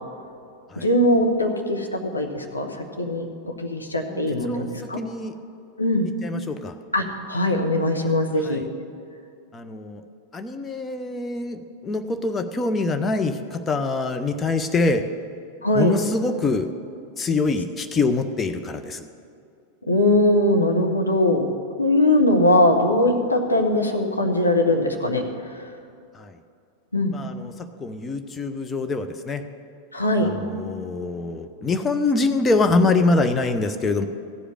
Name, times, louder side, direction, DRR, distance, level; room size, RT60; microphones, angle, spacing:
voice 1, 0.8-2.7 3.0-5.0 5.8-6.1 6.9-8.6 15.6-15.9 19.9-21.5 21.8-25.2 26.9-27.2 29.9-30.3, left 1 dB, 80° left, 2 dB, 1.2 m, -21 dB
voice 2, 4.1-4.7 5.0-5.3 6.2-6.7 8.4-8.6 9.5-10.0 10.3-15.0 15.8-16.7 17.2-19.0 26.2-26.3 27.1-27.5 27.8-29.4 30.2-34.1, left 3 dB, 20° left, 8 dB, 0.8 m, -24 dB
15.0 x 5.0 x 8.9 m, 2.5 s
figure-of-eight pair, 90°, 0 cm